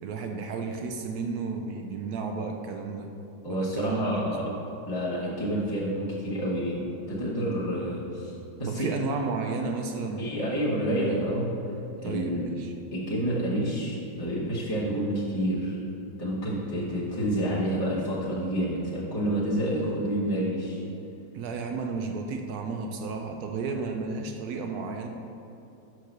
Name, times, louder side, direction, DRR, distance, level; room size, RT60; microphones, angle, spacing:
voice 1, 0.0-3.1 3.5-4.6 8.7-10.3 12.0-12.7 21.3-25.1, right 4 dB, 75° right, 4 dB, 0.8 m, -32 dB
voice 2, 3.4-4.4 4.9-6.8 7.1-8.9 10.2-11.5 12.0-12.4 12.9-15.8 16.2-20.8, equal, 20° left, -8 dB, 0.7 m, -29 dB
6.0 x 4.7 x 6.4 m, 2.8 s
omnidirectional pair, 2.1 m